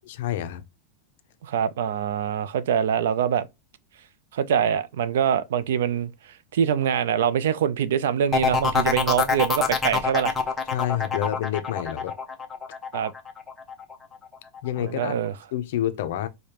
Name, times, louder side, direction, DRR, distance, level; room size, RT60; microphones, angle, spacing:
voice 1, 0.1-0.6 10.7-12.2 14.6-15.2 15.5-16.3, left 12 dB, 60° left, 0.5 m, -28 dB
voice 2, 1.4-3.5 4.3-6.1 6.5-10.3 12.9-13.1 14.8-15.3, right 8 dB, 80° right, 0.4 m, -24 dB
sound 1, 8.3-13.9 14.3-14.8, left 5 dB, 10° left, 0.5 m, -25 dB
5.0 x 2.1 x 2.8 m
supercardioid pair, 170°, 0 cm